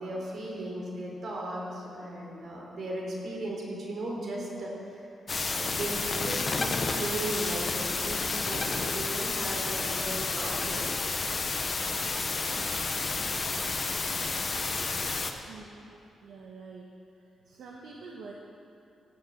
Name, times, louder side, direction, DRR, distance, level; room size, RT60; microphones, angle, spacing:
voice 1, 0.0-5.0 5.5-10.9, right 1 dB, 50° right, -2 dB, 3.4 m, -36 dB
sound 1, 5.3-15.3, left 3 dB, 30° left, 0.8 m, -30 dB
voice 2, 15.5-15.9 16.2-16.9 17.2-18.3, right 4 dB, 70° right, -1 dB, 1.2 m, -46 dB
16.5 x 7.5 x 7.6 m, 2.6 s
wide cardioid pair, 160°, 0 cm